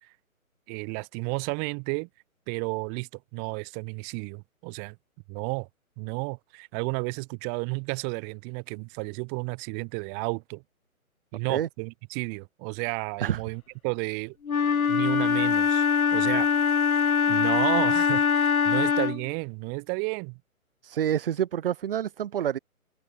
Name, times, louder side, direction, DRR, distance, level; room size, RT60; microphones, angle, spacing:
voice 1, 0.7-2.1 2.5-5.0 5.3-5.7 6.0-10.6 11.3-14.3 14.9-15.8 16.1-16.5 17.3-20.4, right 40 dB or more, 20° right, 6.1 m, -32 dB
Wind instrument woodwind instrument, 14.4-19.3, left 6 dB, 75° left, 1.4 m, -23 dB
voice 2, 20.8-22.6, right 10 dB, 40° right, 2.0 m, -28 dB
figure-of-eight pair, 150°, 43 cm